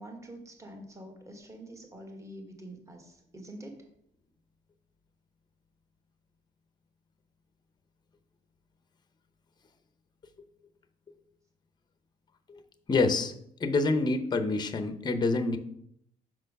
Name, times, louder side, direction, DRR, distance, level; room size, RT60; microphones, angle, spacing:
voice 1, 0.0-3.8, right 1 dB, 20° right, 3 dB, 1.4 m, -46 dB
voice 2, 12.9-13.3 13.6-15.6, left 3 dB, 25° left, 9 dB, 0.7 m, -27 dB
6.0 x 4.4 x 5.3 m, 0.72 s
cardioid pair, 110°, 17 cm